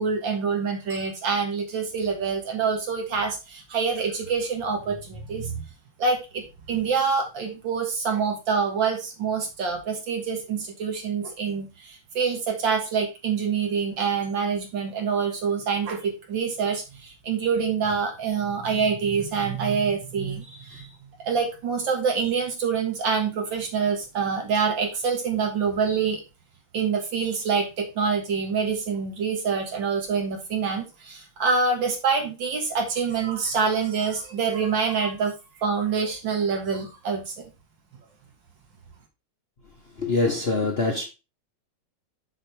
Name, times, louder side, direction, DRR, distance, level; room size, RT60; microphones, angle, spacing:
voice 1, 0.0-5.6 6.0-20.9 21.2-26.2 26.7-35.3 35.6-37.5, right 5 dB, 65° right, 2.2 m, -26 dB
voice 2, 40.0-41.0, left 3 dB, 35° left, 1.1 m, -24 dB
6.5 x 6.1 x 3.3 m
omnidirectional pair, 2.3 m